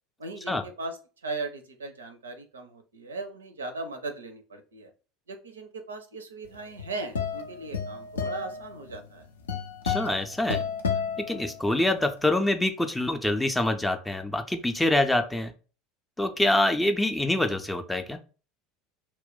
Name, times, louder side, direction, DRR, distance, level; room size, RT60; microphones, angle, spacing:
voice 1, 0.2-4.9 5.3-9.3, right 3 dB, 80° right, 7 dB, 0.4 m, -38 dB
sound 1, 6.5-12.0, left 6 dB, 75° left, 0.4 m, -32 dB
voice 2, 9.8-10.6 11.3-15.5 16.2-18.2, left 1 dB, 10° left, 7 dB, 0.4 m, -25 dB
2.2 x 2.1 x 3.8 m, 0.35 s
figure-of-eight pair, 70°, 0 cm